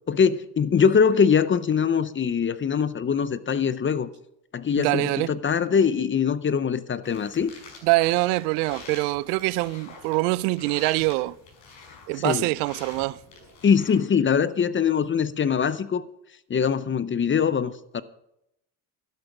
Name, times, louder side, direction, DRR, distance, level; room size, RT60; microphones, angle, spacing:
voice 1, 0.1-4.1 4.5-7.5 12.2-12.5 13.6-16.1 16.5-18.0, left 6 dB, 25° left, 0.6 m, -22 dB
voice 2, 4.8-5.3 7.8-11.4 12.1-13.2, right 21 dB, 80° right, 0.6 m, -24 dB
sound 1, 7.0-14.0, left 4 dB, 55° left, 6.6 m, -47 dB
12.0 x 10.5 x 6.0 m
supercardioid pair, 85°, 49 cm